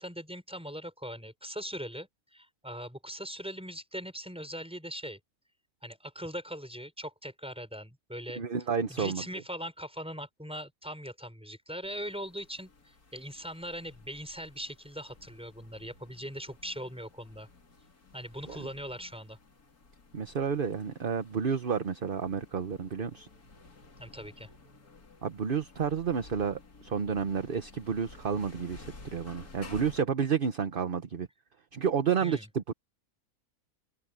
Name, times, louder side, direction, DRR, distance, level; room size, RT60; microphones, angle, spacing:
voice 1, 0.0-5.2 5.8-8.4 8.9-17.5 18.1-19.4 24.0-24.5 32.2-32.5, equal, 5° right, 5.3 m, -40 dB
voice 2, 8.4-9.2 18.5-18.6 20.1-23.3 25.2-31.3 31.7-32.7, right 6 dB, 40° right, 1.0 m, -30 dB
sound 1, 11.8-30.0, left 3 dB, 80° left, 3.1 m, -53 dB
open air
omnidirectional pair, 1.6 m